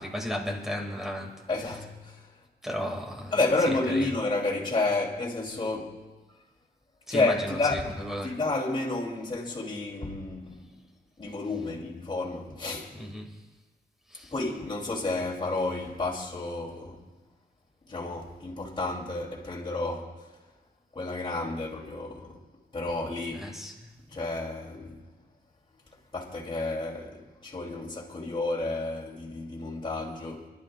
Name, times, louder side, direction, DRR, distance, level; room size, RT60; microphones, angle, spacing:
voice 1, 0.0-1.4 2.6-3.3 3.7-4.1 7.1-8.4 12.9-13.4 14.1-14.3 23.3-23.9, equal, ahead, 2.2 m, -35 dB
voice 2, 1.5-2.2 3.3-6.0 7.1-7.9 8.2-10.6 11.2-12.9 14.3-17.0 17.9-20.2 20.9-22.4 22.7-23.5 24.1-25.1 26.1-30.5, left 2 dB, 30° left, 3.1 m, -30 dB
29.5 x 12.0 x 2.5 m
wide cardioid pair, 125°, 17 cm